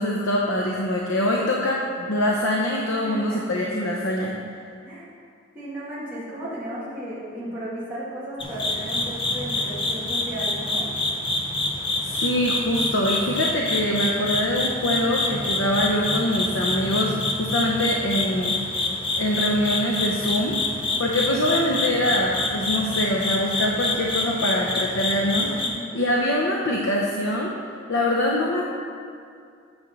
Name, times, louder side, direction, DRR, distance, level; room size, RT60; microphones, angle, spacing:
voice 1, 0.0-4.3 12.0-18.6 19.2-20.6 21.0-25.5 25.9-27.5 27.9-28.7, left 1 dB, 75° left, -2 dB, 0.7 m, -24 dB
voice 2, 3.1-3.4 4.8-5.1 5.5-10.8 25.6-25.9, right 1 dB, 10° right, -10 dB, 1.6 m, -34 dB
sound 1, 8.4-25.7, left 2 dB, 25° left, 0.6 m, -27 dB
8.8 x 6.0 x 4.0 m, 2.4 s
head